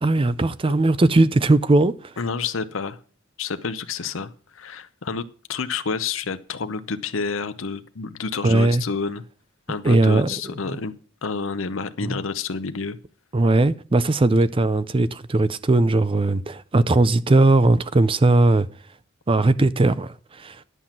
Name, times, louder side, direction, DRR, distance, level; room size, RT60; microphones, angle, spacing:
voice 1, 0.0-1.9 8.4-8.8 9.8-10.4 10.7-10.8 12.0-12.2 13.3-18.7 19.3-20.6, right 2 dB, 25° right, 0.5 m, -19 dB
voice 2, 2.2-3.0 3.4-9.2 9.7-10.9 11.2-13.0, left 5 dB, 75° left, 0.7 m, -29 dB
11.0 x 5.8 x 7.4 m
head